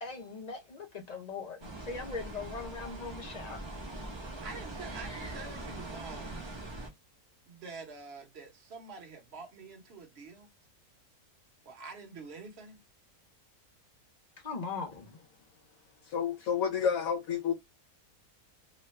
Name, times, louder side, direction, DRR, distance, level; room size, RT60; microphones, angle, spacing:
voice 1, 0.0-3.6 14.4-15.2, left 4 dB, 40° left, 0.6 m, -40 dB
sound 1, 1.6-6.9, right 2 dB, 25° right, 0.6 m, -42 dB
voice 2, 4.4-6.5 7.5-10.5 11.6-12.8, right 4 dB, 45° right, 1.1 m, -46 dB
voice 3, 16.1-17.5, left 7 dB, 70° left, 1.1 m, -29 dB
3.0 x 2.3 x 3.1 m
omnidirectional pair, 1.6 m